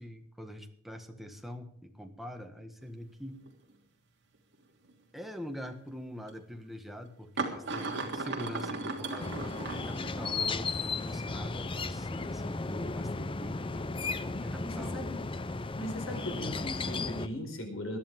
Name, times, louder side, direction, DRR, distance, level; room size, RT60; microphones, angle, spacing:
voice 1, 0.0-3.4 5.1-15.0, equal, ahead, 4 dB, 1.6 m, -44 dB
sound 1, 2.8-2.9 3.4-3.7 4.9-5.0 6.3-6.4 7.4-10.5, right 3 dB, 60° right, 3.0 m, -36 dB
sound 2, 9.2-17.3, left 3 dB, 25° left, 0.6 m, -35 dB
voice 2, 14.6-15.2 15.8-18.0, left 1 dB, 85° left, 4 dB, 4.6 m, -38 dB
21.0 x 12.0 x 3.7 m, 0.65 s
head